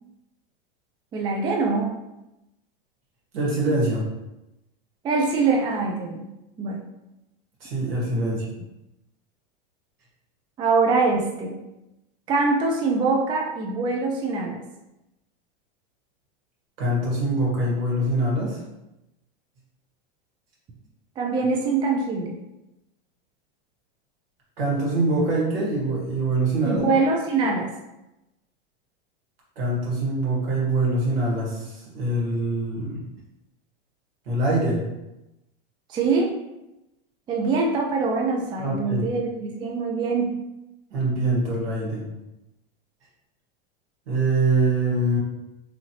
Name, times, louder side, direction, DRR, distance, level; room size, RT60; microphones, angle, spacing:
voice 1, 1.1-1.9 5.0-6.2 6.6-6.8 8.1-8.4 10.6-11.6 12.3-14.6 21.2-22.4 26.6-27.7 35.9-36.3 37.3-40.4, right 4 dB, 15° right, 0 dB, 0.3 m, -23 dB
voice 2, 3.3-4.1 7.6-8.5 16.8-18.6 24.6-26.8 29.5-33.0 34.2-34.8 38.6-39.0 40.9-42.0 44.1-45.2, right 2 dB, 80° right, -4 dB, 1.5 m, -24 dB
2.9 x 2.7 x 2.7 m, 0.94 s
hypercardioid pair, 115°, 29 cm